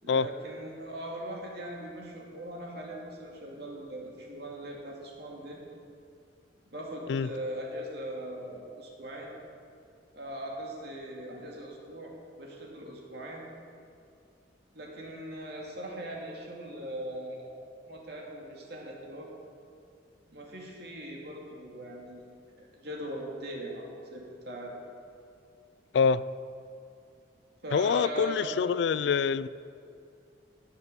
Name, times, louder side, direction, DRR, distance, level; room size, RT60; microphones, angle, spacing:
voice 1, 0.0-5.6 6.7-9.3 10.1-12.1 12.4-13.4 14.7-17.5 17.9-19.3 20.3-24.7 27.6-28.5, right 1 dB, 60° right, -2 dB, 2.6 m, -40 dB
voice 2, 25.9-26.2 27.7-29.5, left 6 dB, 65° left, 17 dB, 0.3 m, -25 dB
17.0 x 6.8 x 6.8 m, 2.5 s
head